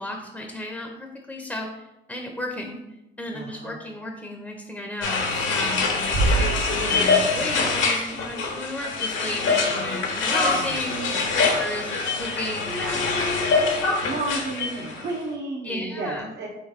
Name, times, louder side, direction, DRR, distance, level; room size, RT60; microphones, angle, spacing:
voice 1, 0.0-2.8 3.2-13.0 15.6-16.3, left 1 dB, 5° left, 1 dB, 0.6 m, -34 dB
voice 2, 3.3-3.8 9.7-10.8 14.0-16.5, right 2 dB, 60° right, -3 dB, 0.7 m, -33 dB
sound 1, 5.0-15.1, left 4 dB, 75° left, 1.0 m, -24 dB
Bass drum, 6.1-7.5, right 3 dB, 80° right, 1.3 m, -25 dB
3.7 x 3.2 x 4.0 m, 0.94 s
cardioid pair, 90°, 20 cm